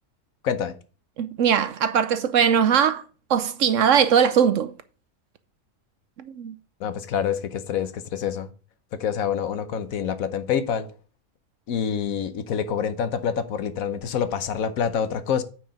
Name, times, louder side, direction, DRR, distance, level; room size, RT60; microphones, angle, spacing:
voice 1, 0.4-0.7 6.8-8.5 8.9-10.9 11.7-15.4, left 7 dB, 70° left, 1.2 m, -26 dB
voice 2, 1.2-3.0 3.3-4.7 6.3-6.6, right 8 dB, 65° right, 0.9 m, -20 dB
9.3 x 4.8 x 5.1 m
omnidirectional pair, 1.6 m